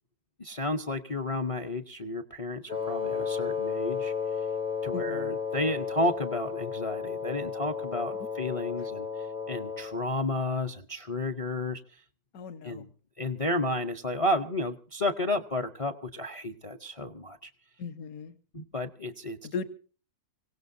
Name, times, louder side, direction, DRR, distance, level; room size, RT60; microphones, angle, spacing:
voice 1, 0.4-4.1 4.8-9.1 9.5-12.0 12.6-12.9 13.2-17.5 18.5-19.4, left 1 dB, 35° left, 10 dB, 0.6 m, -32 dB
Wind instrument woodwind instrument, 2.7-10.0, left 6 dB, 5° right, 0.5 m, -33 dB
voice 2, 4.9-5.4 12.3-12.9 17.8-18.4 19.4-19.7, left 5 dB, 65° left, 10 dB, 1.5 m, -37 dB
25.5 x 17.0 x 2.6 m, 0.37 s
omnidirectional pair, 1.7 m